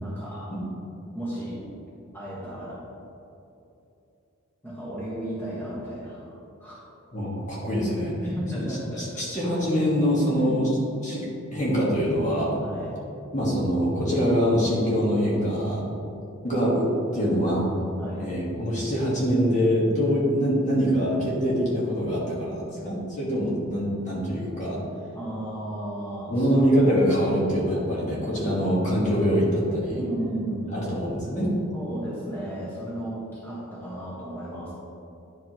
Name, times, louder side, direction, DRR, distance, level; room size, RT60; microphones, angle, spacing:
voice 1, 0.0-0.5 1.1-1.6 2.1-2.8 4.6-6.3 6.6-6.8 8.2-9.2 10.3-10.7 12.6-12.9 18.0-18.3 25.1-26.5 29.9-31.0 31.7-34.7, right 1 dB, 10° left, -8 dB, 1.4 m, -34 dB
voice 2, 7.1-8.1 8.5-10.7 11.0-12.5 13.3-15.8 16.4-17.7 18.2-24.8 26.3-30.1 30.7-31.5, equal, 35° left, -6 dB, 1.5 m, -24 dB
10.5 x 5.1 x 3.0 m, 2.8 s
head